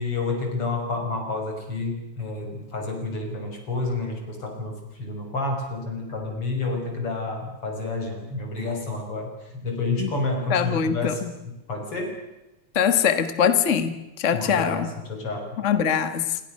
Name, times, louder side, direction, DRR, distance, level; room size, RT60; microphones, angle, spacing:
voice 1, 0.0-11.3 11.7-12.2 14.3-15.6, left 3 dB, 90° left, 3 dB, 7.0 m, -29 dB
voice 2, 10.5-11.3 12.7-14.9 15.6-16.4, left 8 dB, 35° left, 10 dB, 1.8 m, -22 dB
28.0 x 26.0 x 6.6 m, 0.97 s
omnidirectional pair, 2.4 m